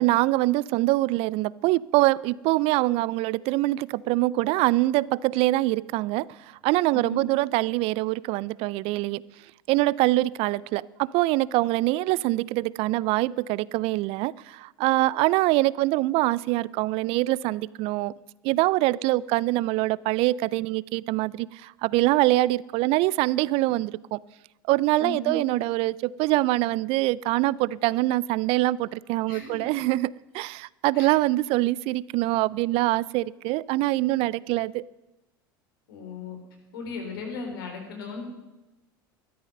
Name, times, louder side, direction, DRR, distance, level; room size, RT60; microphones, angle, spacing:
voice 1, 0.0-9.2 9.7-18.1 18.4-24.2 24.7-34.8, right 18 dB, 55° right, 23 dB, 0.4 m, -24 dB
voice 2, 6.9-7.2 25.0-25.4 29.3-29.8 30.9-31.1 35.9-36.4 36.7-38.2, left 4 dB, 75° left, 3 dB, 3.8 m, -36 dB
13.5 x 12.0 x 5.4 m, 1.0 s
hypercardioid pair, 80°, 12 cm